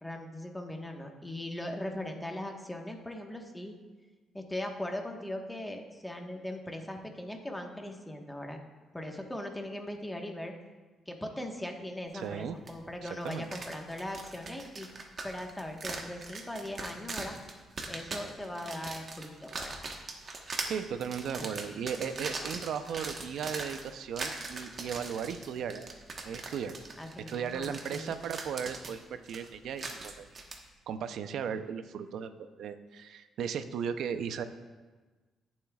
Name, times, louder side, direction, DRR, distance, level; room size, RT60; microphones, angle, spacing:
voice 1, 0.0-3.7 4.3-8.6 8.9-10.5 11.1-14.9 15.2-17.3 17.9-19.8 21.4-21.5 27.0-28.1, left 1 dB, 10° left, 2 dB, 1.4 m, -39 dB
voice 2, 12.1-12.6 13.0-13.4 20.7-25.9 26.2-26.7 27.3-30.4 30.9-34.5, right 7 dB, 75° right, 10 dB, 0.6 m, -36 dB
sound 1, 12.7-12.8 13.1-30.6, right 3 dB, 45° right, 1.3 m, -41 dB
18.5 x 7.4 x 2.4 m, 1.3 s
cardioid pair, 90°, 0 cm